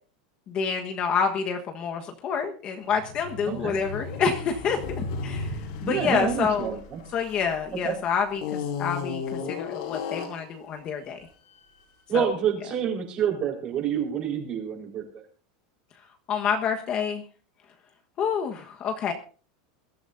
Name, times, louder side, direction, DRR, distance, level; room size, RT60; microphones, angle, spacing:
voice 1, 0.5-5.5 5.8-6.8 7.1-11.2 12.1-12.3 16.3-17.2 18.2-19.1, left 6 dB, 30° left, 4 dB, 1.3 m, -28 dB
sound 1, 2.9-7.7 8.4-10.5, left 5 dB, 60° left, 4.1 m, -34 dB
voice 2, 5.8-7.0 7.8-7.9 12.1-15.0, right 8 dB, 30° right, 2 dB, 4.5 m, -27 dB
22.0 x 13.5 x 2.7 m, 0.37 s
supercardioid pair, 170°, 4 cm